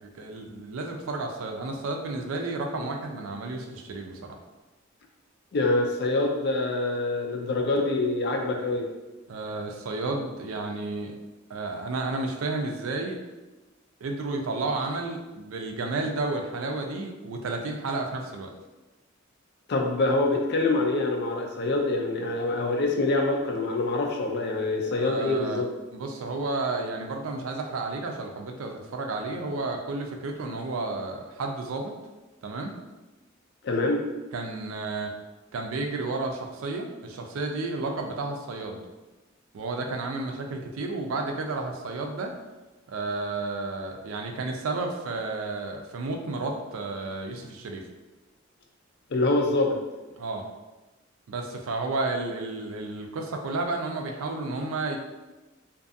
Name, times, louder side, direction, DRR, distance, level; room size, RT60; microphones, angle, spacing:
voice 1, 0.0-4.4 9.3-11.1 11.5-13.2 14.0-18.5 25.0-25.6 25.9-31.9 32.4-32.7 34.3-35.1 35.5-38.8 39.5-42.3 42.9-47.8 50.2-50.4 51.3-55.0, right 3 dB, 85° right, 3 dB, 0.4 m, -32 dB
voice 2, 5.5-8.9 19.7-25.7 33.6-34.0 49.1-49.8, left 2 dB, 55° left, 2 dB, 0.4 m, -25 dB
2.6 x 2.4 x 2.6 m, 1.1 s
head